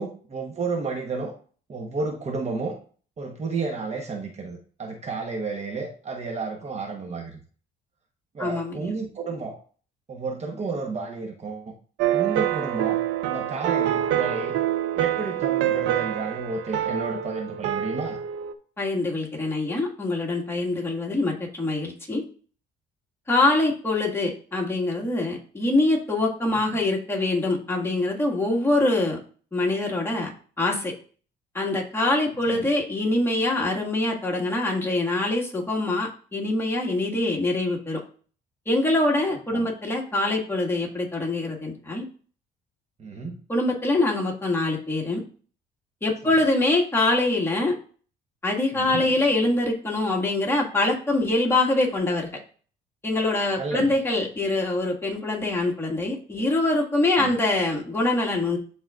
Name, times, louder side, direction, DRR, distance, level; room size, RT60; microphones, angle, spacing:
voice 1, 0.0-1.3 1.7-2.8 3.2-7.4 8.3-9.6 10.1-11.7 12.1-14.6 15.0-18.2 32.5-32.7 39.5-39.7 43.0-43.4 48.7-49.1 53.6-53.9 57.2-57.3, right 4 dB, 35° right, 2 dB, 1.2 m, -31 dB
voice 2, 8.4-8.9 18.8-22.2 23.3-29.2 29.5-30.3 30.6-30.9 31.5-38.0 38.7-42.0 43.5-45.2 46.0-47.7 48.4-52.3 53.0-58.6, left 2 dB, 15° left, -2 dB, 1.9 m, -24 dB
sound 1, 12.0-18.5, right 11 dB, 80° right, 0.6 m, -26 dB
11.5 x 4.0 x 2.5 m, 0.42 s
cardioid pair, 100°, 18 cm